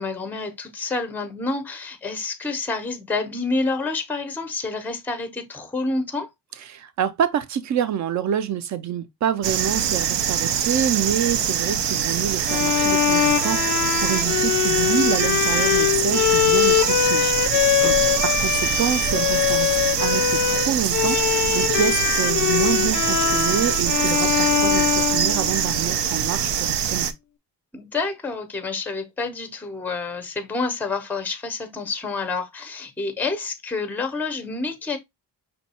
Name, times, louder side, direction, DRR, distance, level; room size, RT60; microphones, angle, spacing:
voice 1, 0.0-6.3 17.8-18.2 27.7-35.0, left 3 dB, 5° left, 0.6 m, -28 dB
voice 2, 6.7-17.9 18.2-27.1, right 9 dB, 45° right, 0.5 m, -27 dB
sound 1, 9.4-27.1, right 8 dB, 90° right, 0.7 m, -24 dB
Bowed string instrument, 12.5-25.9, left 12 dB, 50° left, 0.4 m, -22 dB
5.4 x 2.3 x 4.1 m
cardioid pair, 160°, 41 cm